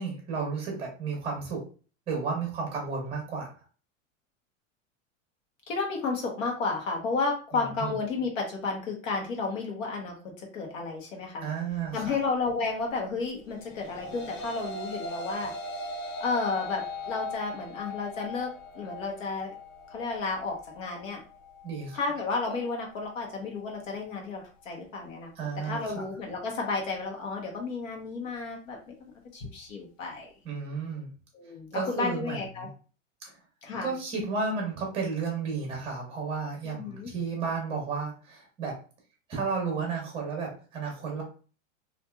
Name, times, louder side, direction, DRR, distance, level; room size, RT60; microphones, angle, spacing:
voice 1, 0.0-1.6 2.1-3.5 7.5-7.9 11.4-12.2 21.6-22.0 25.4-26.0 30.4-31.1 31.7-32.7 33.8-38.7 39.3-41.2, right 5 dB, 15° right, 0 dB, 0.8 m, -32 dB
voice 2, 5.7-11.4 11.9-15.5 16.2-19.5 19.9-21.2 21.9-25.3 25.6-28.8 29.3-30.3 31.3-32.7 33.6-33.9 36.6-37.1, left 4 dB, 75° left, 0 dB, 1.0 m, -32 dB
sound 1, 13.6-22.7, left 2 dB, 30° left, 0.5 m, -39 dB
2.9 x 2.5 x 2.3 m, 0.38 s
supercardioid pair, 155°, 39 cm